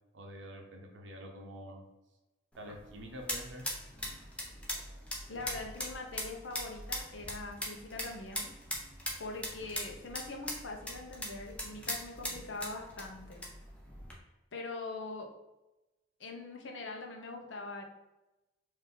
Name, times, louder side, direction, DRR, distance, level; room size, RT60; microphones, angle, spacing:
voice 1, 0.1-1.8 2.6-3.7, equal, 75° right, 2 dB, 0.6 m, -46 dB
sound 1, 2.5-14.2, left 1 dB, 5° left, 0.6 m, -41 dB
voice 2, 5.3-8.6 9.2-13.5 14.5-15.3 16.2-17.8, left 3 dB, 75° left, 2 dB, 0.7 m, -42 dB
3.8 x 2.6 x 3.7 m, 1.0 s
head